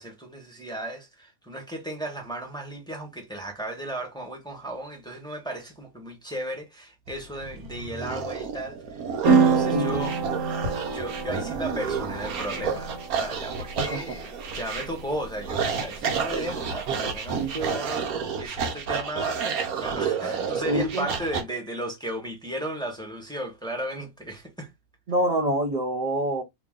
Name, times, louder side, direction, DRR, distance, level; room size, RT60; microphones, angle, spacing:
voice 1, 0.0-9.0 9.3-10.2 10.4-10.6 10.9-18.0 18.4-19.4 19.8-24.7, right 1 dB, 5° left, 0.9 m, -35 dB
sound 1, 7.1-21.4, right 6 dB, 85° right, 1.2 m, -31 dB
sound 2, 9.2-17.7, right 5 dB, 65° right, 1.5 m, -28 dB
voice 2, 9.7-10.1 13.8-14.0 17.3-17.8 20.7-21.1 25.1-26.4, right 1 dB, 45° right, 0.6 m, -26 dB
3.0 x 2.8 x 3.6 m
omnidirectional pair, 1.5 m